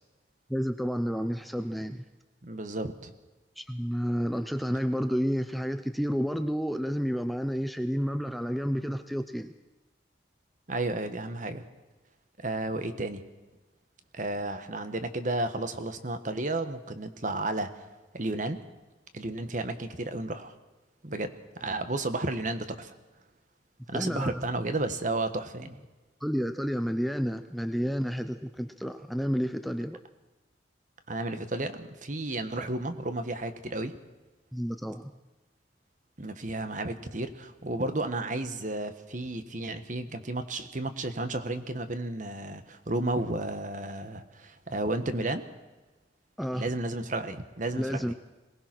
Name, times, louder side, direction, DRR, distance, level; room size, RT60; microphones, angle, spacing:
voice 1, 0.5-2.0 3.6-9.5 23.9-24.5 26.2-30.0 34.5-35.1 46.4-46.7 47.8-48.1, equal, ahead, 8 dB, 0.6 m, -30 dB
voice 2, 2.4-3.1 10.7-11.6 12.4-13.2 14.1-17.8 18.1-18.6 19.1-20.5 21.0-21.3 21.6-22.9 23.9-25.8 31.1-33.9 36.2-45.4 46.5-48.1, right 2 dB, 45° right, 10 dB, 1.4 m, -32 dB
22.5 x 19.0 x 6.1 m, 1.2 s
head